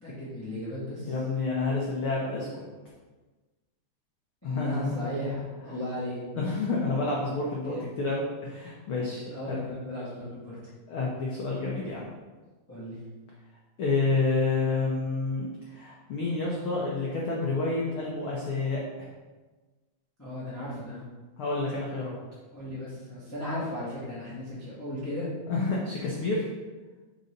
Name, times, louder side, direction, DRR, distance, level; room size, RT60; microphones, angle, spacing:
voice 1, 0.0-1.1 4.4-6.2 7.6-7.9 9.3-10.6 12.7-13.0 20.2-21.0 22.5-25.3, left 1 dB, 5° left, -10 dB, 1.3 m, -35 dB
voice 2, 1.0-2.6 4.4-5.0 6.4-9.6 10.9-12.0 13.8-19.1 21.4-22.1 25.5-26.5, left 3 dB, 80° left, -3 dB, 1.2 m, -29 dB
5.3 x 4.0 x 5.2 m, 1.3 s
omnidirectional pair, 3.6 m